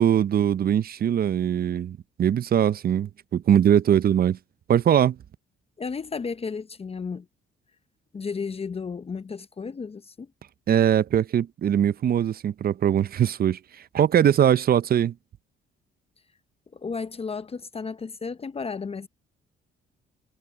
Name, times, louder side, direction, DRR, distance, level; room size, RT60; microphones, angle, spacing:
voice 1, 0.0-4.4 4.7-5.2 10.7-13.6 13.9-15.1, right 9 dB, 50° right, 0.6 m, -21 dB
voice 2, 5.8-7.3 8.1-10.3 16.7-19.1, left 5 dB, 30° left, 0.7 m, -33 dB
cardioid pair, 80°, 20 cm